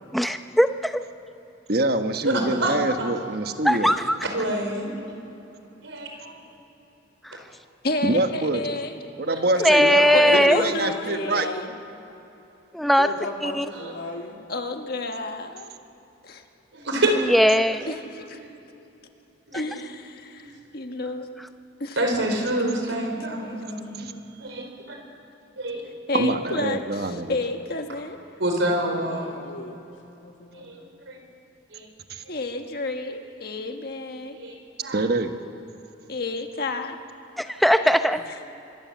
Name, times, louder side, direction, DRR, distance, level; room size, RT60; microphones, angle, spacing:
voice 1, 0.1-1.0 3.6-4.2 7.2-7.4 9.6-10.6 12.7-13.1 13.4-13.7 17.2-18.0 19.5-19.6 37.4-38.2, equal, ahead, 8 dB, 0.6 m, -19 dB
voice 2, 1.7-3.9 8.0-8.6 9.2-10.0 10.3-11.5 24.0-24.1 26.1-27.4 32.1-32.2 34.9-35.3, right 2 dB, 55° right, 7 dB, 1.2 m, -25 dB
voice 3, 2.2-3.1 4.3-4.9 5.8-6.3 9.3-9.4 13.7-13.9 16.7-17.1 19.5-19.8 20.4-20.5 22.0-23.9 24.4-24.6 25.6-25.8 28.4-29.4 30.6-31.2 31.7-31.9 34.3-34.5 34.8-35.0, right 1 dB, 80° right, 2 dB, 4.6 m, -27 dB
voice 4, 7.8-9.0 10.1-11.7 14.5-15.7 16.2-16.4 17.9-18.4 19.5-21.3 21.8-22.0 23.4-23.6 24.0-24.7 26.1-28.2 30.2-30.9 32.3-34.4 36.1-37.0, left 2 dB, 55° left, 5 dB, 1.6 m, -31 dB
voice 5, 9.5-11.7 13.0-14.4 28.9-29.8, left 2 dB, 80° left, 1 dB, 2.5 m, -33 dB
25.0 x 21.0 x 7.4 m, 3.0 s
head